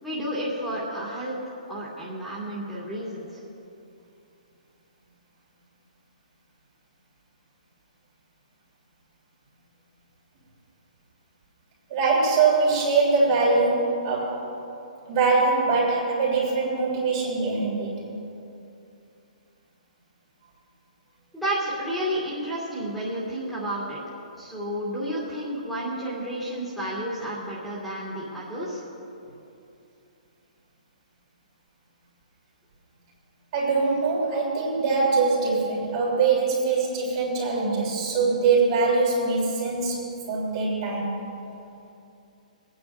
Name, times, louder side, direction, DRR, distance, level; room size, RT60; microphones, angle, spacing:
voice 1, 0.0-1.4 1.7-3.4 21.3-24.0 24.4-28.8, equal, ahead, -8 dB, 2.8 m, -31 dB
voice 2, 11.9-14.4 15.1-17.9 33.5-40.0 40.3-41.2, right 4 dB, 45° right, -5 dB, 3.3 m, -23 dB
26.5 x 9.5 x 2.6 m, 2.7 s
hypercardioid pair, 140°, 4 cm